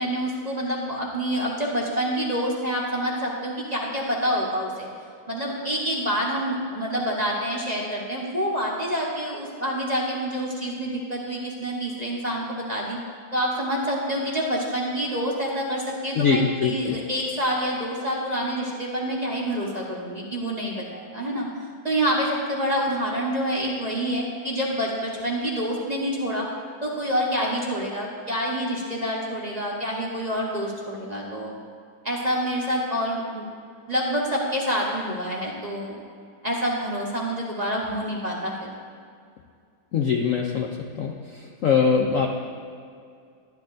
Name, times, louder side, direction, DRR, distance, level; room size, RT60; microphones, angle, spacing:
voice 1, 0.0-4.9 5.3-13.0 13.3-21.5 21.8-26.5 26.8-31.5 32.0-33.5 33.9-36.0 36.4-38.7, equal, 30° right, -4 dB, 0.8 m, -27 dB
voice 2, 16.2-16.9 39.9-40.7 41.0-41.1 41.6-42.3, left 6 dB, 90° left, 1 dB, 0.7 m, -22 dB
12.0 x 10.5 x 2.6 m, 2.2 s
omnidirectional pair, 2.1 m